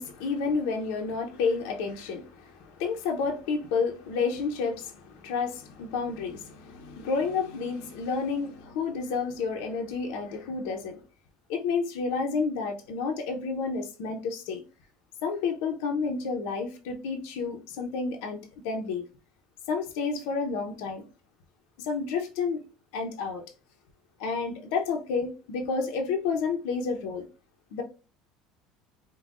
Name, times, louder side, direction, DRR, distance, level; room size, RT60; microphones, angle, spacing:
voice 1, 0.0-11.0 11.5-14.6 15.2-18.4 18.6-19.1 19.7-21.0 21.8-22.6 22.9-23.4 24.2-27.3 27.7-27.8, left 5 dB, 80° left, 0.8 m, -30 dB
5.3 x 2.3 x 2.4 m
cardioid pair, 145°, 0 cm